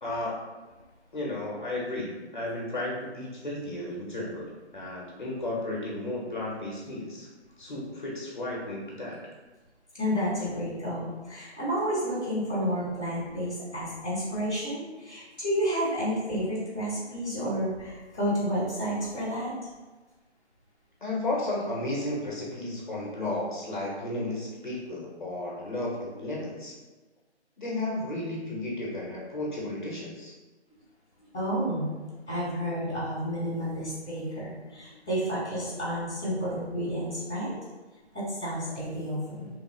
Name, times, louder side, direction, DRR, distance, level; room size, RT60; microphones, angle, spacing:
voice 1, 0.0-0.3 1.1-7.3 7.6-9.2 21.0-26.7 27.6-30.3, left 2 dB, 45° left, -3 dB, 0.6 m, -33 dB
voice 2, 9.9-19.5 31.3-37.5 38.1-39.5, equal, 10° right, -18 dB, 0.7 m, -30 dB
3.0 x 2.0 x 3.0 m, 1.2 s
figure-of-eight pair, 165°, 34 cm